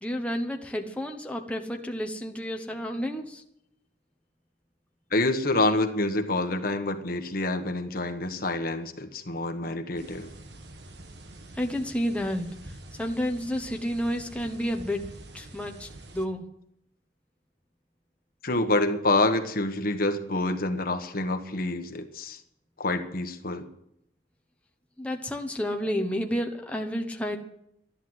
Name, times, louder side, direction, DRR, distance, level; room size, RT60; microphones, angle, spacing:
voice 1, 0.0-3.4 11.6-12.5 13.0-15.1 15.3-16.4 25.0-27.4, equal, 5° left, 3 dB, 1.1 m, -30 dB
voice 2, 5.1-10.3 18.4-22.4 22.8-23.7, left 2 dB, 55° left, 7 dB, 1.4 m, -27 dB
sound 1, 10.0-16.3, right 1 dB, 70° right, 1.5 m, -46 dB
13.0 x 11.0 x 8.0 m, 0.75 s
head